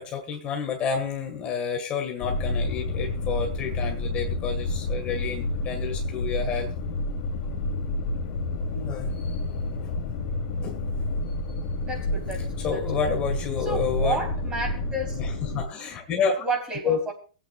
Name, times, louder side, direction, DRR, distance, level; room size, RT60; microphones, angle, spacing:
voice 1, 0.0-6.7 8.7-9.4 9.8-9.9 10.6-10.8 12.6-14.2 15.1-16.4 16.8-17.0, left 6 dB, 30° left, 2 dB, 1.9 m, -29 dB
sound 1, 2.2-15.6, left 2 dB, 45° left, 2.7 m, -29 dB
voice 2, 11.9-13.1 13.6-15.2 16.4-17.1, right 3 dB, 20° right, 2 dB, 3.9 m, -31 dB
22.0 x 8.8 x 2.5 m, 0.37 s
hypercardioid pair, 140°, 4 cm